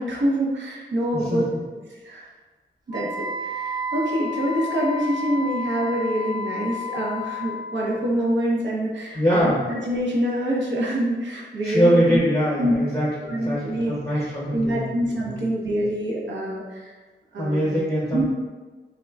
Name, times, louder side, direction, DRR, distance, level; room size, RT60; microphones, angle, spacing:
voice 1, 0.0-1.4 2.0-2.3 2.9-12.2 12.6-12.8 13.3-16.9 17.3-17.8 18.1-18.3, equal, 70° right, -4 dB, 0.7 m, -26 dB
Wind instrument woodwind instrument, 2.9-7.7, left 2 dB, 20° right, 0.4 m, -31 dB
voice 2, 9.1-9.6 11.6-14.8 15.1-15.4 17.4-18.3, equal, 10° left, -8 dB, 0.8 m, -23 dB
3.7 x 2.1 x 3.4 m, 1.3 s
wide cardioid pair, 115°, 19 cm